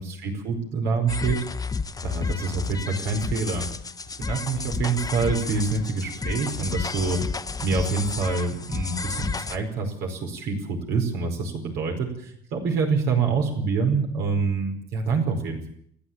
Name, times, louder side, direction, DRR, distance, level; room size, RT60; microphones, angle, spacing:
voice 1, 0.0-1.4 2.0-3.7 4.3-7.2 7.6-15.7, right 4 dB, 80° right, 2 dB, 4.9 m, -26 dB
sound 1, 1.1-9.6, left 4 dB, 20° left, 1.2 m, -31 dB
29.5 x 10.0 x 8.8 m, 0.66 s
cardioid pair, 110°, 17 cm